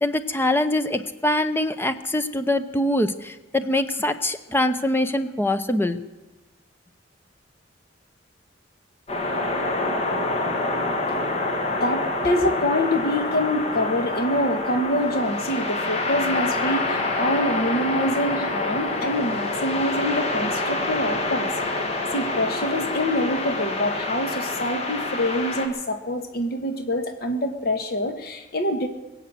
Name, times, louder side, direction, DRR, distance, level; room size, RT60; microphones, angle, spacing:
voice 1, 0.0-6.0, left 1 dB, 10° left, 10 dB, 0.7 m, -23 dB
sound 1, 9.1-25.7, left 2 dB, 35° left, 1.7 m, -27 dB
voice 2, 11.8-21.5 22.1-28.9, left 1 dB, 50° left, 6 dB, 1.4 m, -25 dB
22.5 x 8.1 x 7.6 m, 1.1 s
head